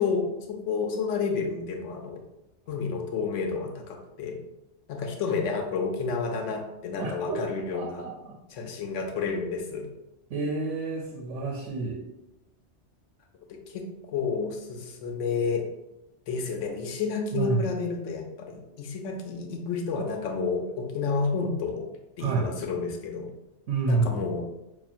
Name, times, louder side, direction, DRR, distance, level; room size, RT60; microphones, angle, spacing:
voice 1, 0.0-2.2 2.7-4.4 4.9-8.0 8.5-9.9 13.5-15.6 16.3-21.9 22.2-23.3 23.9-24.4, left 5 dB, 90° left, 3 dB, 0.9 m, -30 dB
voice 2, 7.0-7.4 7.7-8.3 10.3-12.0 17.3-17.7 22.2-22.5 23.7-24.2, right 4 dB, 80° right, 0 dB, 0.9 m, -29 dB
5.5 x 2.4 x 2.4 m, 0.94 s
omnidirectional pair, 1.2 m